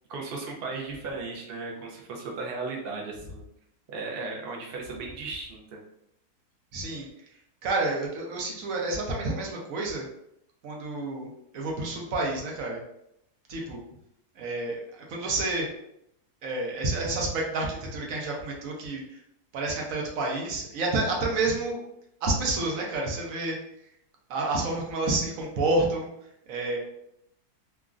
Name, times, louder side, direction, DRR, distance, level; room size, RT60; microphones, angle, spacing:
voice 1, 0.1-3.4 3.9-5.8, right 3 dB, 80° right, -1 dB, 0.5 m, -36 dB
voice 2, 6.7-7.1 7.6-10.1 10.6-11.3 11.5-12.8 13.5-13.8 14.4-15.7 16.4-19.2 19.5-21.8 22.2-23.6 24.3-26.1 26.5-26.8, right 2 dB, 65° right, 0 dB, 0.9 m, -29 dB
3.0 x 2.4 x 2.4 m, 0.78 s
omnidirectional pair, 1.7 m